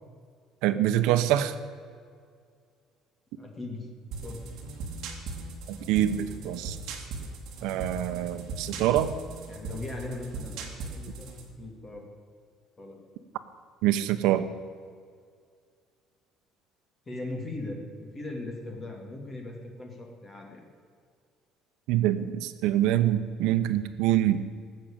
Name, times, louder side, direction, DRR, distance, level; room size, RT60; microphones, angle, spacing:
voice 1, 0.6-1.5 5.7-7.0 7.6-9.1 13.8-14.5 21.9-24.4, right 12 dB, 75° right, 10 dB, 0.9 m, -25 dB
voice 2, 3.4-3.9 4.2-4.4 9.5-11.3 11.6-12.1 12.8-13.0 17.1-20.7, left 2 dB, 20° left, 1 dB, 2.5 m, -39 dB
sound 1, 4.1-11.5, right 3 dB, 55° right, 2.5 m, -39 dB
18.5 x 7.7 x 8.8 m, 2.1 s
cardioid pair, 175°, 0 cm